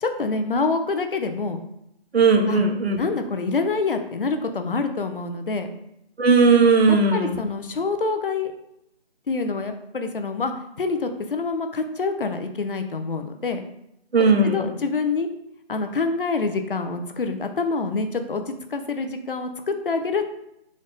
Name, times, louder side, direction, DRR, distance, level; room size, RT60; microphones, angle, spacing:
voice 1, 0.0-1.6 2.5-2.6 3.0-5.7 6.9-8.5 9.3-13.6 14.2-15.3 15.7-20.3, left 4 dB, 60° left, 7 dB, 0.5 m, -26 dB
voice 2, 2.1-3.0 6.2-7.4 14.1-14.7, right 4 dB, 80° right, 4 dB, 0.9 m, -17 dB
4.0 x 2.5 x 3.4 m, 0.81 s
figure-of-eight pair, 170°, 31 cm